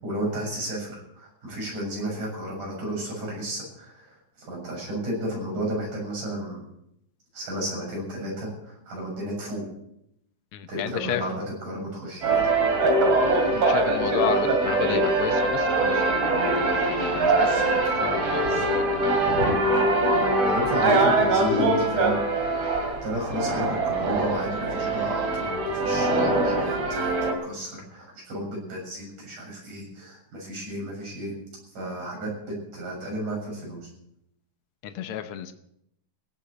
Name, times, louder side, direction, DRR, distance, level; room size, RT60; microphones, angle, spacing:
voice 1, 0.0-6.6 7.3-9.7 10.7-12.4 17.4-18.1 18.4-18.8 20.4-22.2 23.0-27.1 27.4-31.4 31.7-33.9, right 1 dB, 75° right, -2 dB, 8.6 m, -33 dB
voice 2, 10.5-11.2 13.5-19.0 20.1-20.3 34.8-35.5, left 10 dB, 85° left, 9 dB, 1.2 m, -32 dB
sound 1, 12.2-27.3, right 2 dB, 50° right, 3.5 m, -23 dB
17.0 x 8.5 x 9.1 m, 0.77 s
omnidirectional pair, 3.7 m